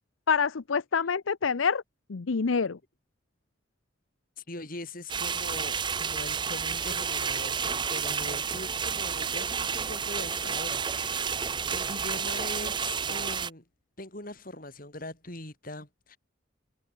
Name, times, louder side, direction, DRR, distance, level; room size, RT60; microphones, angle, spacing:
voice 1, 0.3-1.8 2.1-2.8, left 5 dB, 85° left, 0.7 m, -26 dB
voice 2, 4.5-11.4 11.7-13.6 14.0-16.2, left 1 dB, 45° left, 6.3 m, -41 dB
sound 1, 5.1-13.5, right 6 dB, 25° right, 0.7 m, -31 dB
head